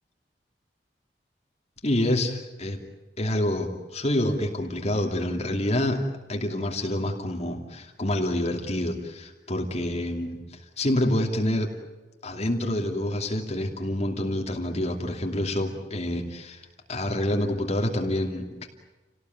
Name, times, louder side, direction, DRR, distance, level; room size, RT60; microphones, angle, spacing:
voice 1, 1.8-2.8 3.2-6.0 6.3-11.7 12.2-16.6 16.9-18.7, left 1 dB, 40° left, 2 dB, 2.7 m, -27 dB
29.5 x 19.0 x 9.4 m, 1.2 s
head